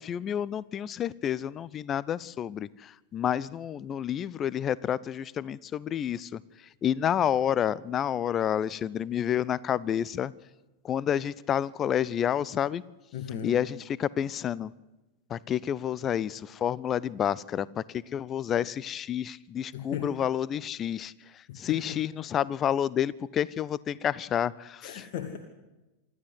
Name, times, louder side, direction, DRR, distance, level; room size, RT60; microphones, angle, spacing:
voice 1, 0.0-10.3 10.8-12.8 13.4-14.7 15.3-25.1, left 9 dB, 25° left, 22 dB, 0.6 m, -29 dB
voice 2, 13.1-13.6 19.7-20.1 21.5-22.0 24.8-25.4, left 9 dB, 50° left, 5 dB, 1.9 m, -36 dB
26.0 x 13.0 x 8.0 m, 1.1 s
figure-of-eight pair, 90°, 0 cm